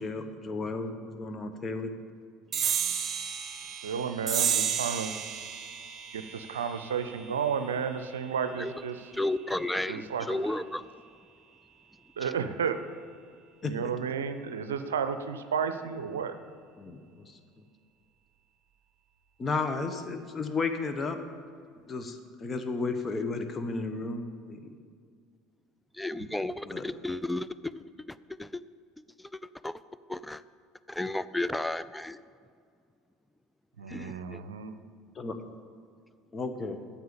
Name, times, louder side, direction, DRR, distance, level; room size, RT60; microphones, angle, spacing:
voice 1, 0.0-1.9 13.6-13.7 16.8-17.4 19.4-21.2 21.9-24.7 26.6-26.9 35.1-35.3 36.3-36.8, left 3 dB, 30° left, 7 dB, 1.0 m, -33 dB
sound 1, 2.5-9.4, right 8 dB, 40° right, 1.0 m, -33 dB
voice 2, 3.8-5.1 6.1-9.1 9.9-10.6 12.2-12.8 13.6-16.3 33.8-34.8, right 7 dB, 80° right, 10 dB, 0.5 m, -32 dB
voice 3, 9.2-10.8 26.0-27.5 28.4-28.6 29.6-29.8 30.1-30.4 30.9-32.2 33.9-34.4, left 1 dB, 5° left, 14 dB, 0.4 m, -32 dB
9.4 x 7.2 x 7.0 m, 2.2 s
figure-of-eight pair, 65°, 0 cm